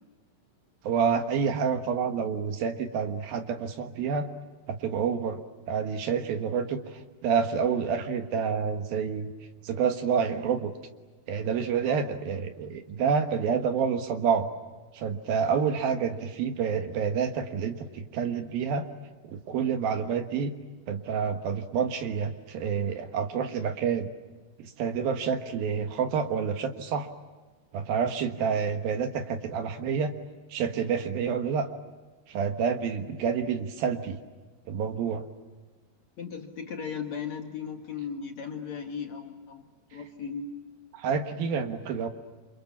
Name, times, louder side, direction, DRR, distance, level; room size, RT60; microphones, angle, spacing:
voice 1, 0.8-4.3 4.7-5.4 5.7-9.3 9.6-10.7 11.3-14.5 14.9-18.9 19.3-20.5 20.9-24.1 24.6-27.1 27.7-30.1 30.5-31.7 32.3-34.2 34.7-35.3 40.9-42.1, right 6 dB, 65° right, 7 dB, 3.0 m, -28 dB
voice 2, 36.2-40.5, left 6 dB, 50° left, 4 dB, 2.4 m, -37 dB
28.5 x 27.5 x 7.2 m, 1.3 s
omnidirectional pair, 4.8 m